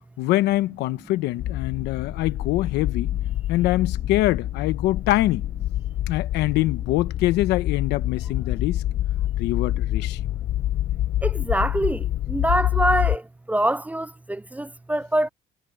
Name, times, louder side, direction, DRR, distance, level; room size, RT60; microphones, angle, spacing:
voice 1, 0.2-3.1 3.5-5.4 6.1-8.8 9.4-10.2, left 17 dB, 90° left, 1.0 m, -24 dB
sound 1, 1.4-13.2, left 13 dB, 75° left, 3.2 m, -27 dB
voice 2, 11.2-12.0 12.3-13.2 13.5-15.3, right 1 dB, 10° right, 0.3 m, -24 dB
cardioid pair, 110°, 17 cm